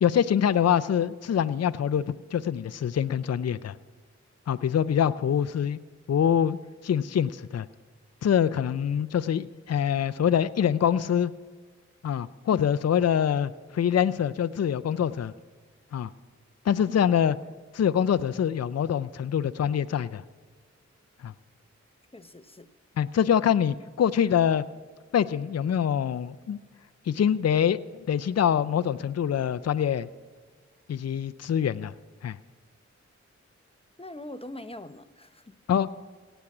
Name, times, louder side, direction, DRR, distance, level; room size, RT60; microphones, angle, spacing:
voice 1, 0.0-3.8 4.5-5.8 6.1-6.6 6.8-7.7 8.2-11.3 12.0-15.3 15.9-16.1 16.6-17.4 17.7-20.2 21.2-21.3 23.0-24.6 25.1-26.6 27.1-27.8 28.1-30.1 30.9-31.9 32.2-32.4 35.7-36.0, left 8 dB, 60° left, 14 dB, 0.5 m, -25 dB
voice 2, 22.1-22.7 34.0-35.5, left 1 dB, 20° left, 11 dB, 0.8 m, -42 dB
17.0 x 8.0 x 6.0 m, 1.5 s
cardioid pair, 45°, 30 cm